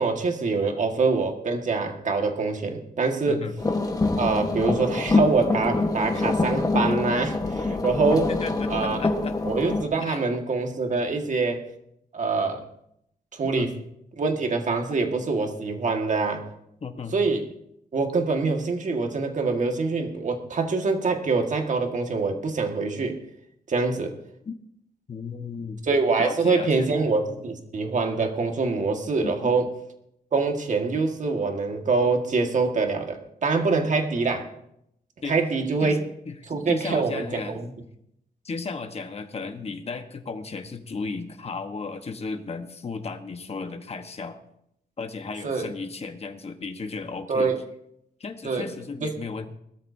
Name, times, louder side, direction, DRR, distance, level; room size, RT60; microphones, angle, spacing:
voice 1, 0.0-3.4 4.2-8.3 8.7-9.0 9.4-11.7 12.1-12.6 13.3-13.7 14.2-16.4 17.1-17.4 17.9-23.2 23.7-24.2 25.8-29.7 30.3-34.5 35.2-36.0 36.5-37.7 45.4-45.7 47.3-47.6 48.4-48.7 49.0-49.1, right 4 dB, 50° right, 4 dB, 1.8 m, -25 dB
sound 1, 3.6-9.8, left 3 dB, 20° left, 1.4 m, -25 dB
voice 2, 8.1-9.3 10.0-10.2 13.6-13.7 16.8-17.1 24.4-24.6 25.1-25.8 26.2-26.9 29.2-29.3 35.2-35.3 35.8-36.0 36.3-36.4 36.7-37.6 38.4-44.4 45.0-47.5 48.2-49.5, left 4 dB, 40° left, 6 dB, 1.2 m, -34 dB
21.0 x 13.5 x 2.8 m, 0.77 s
wide cardioid pair, 140°, 16 cm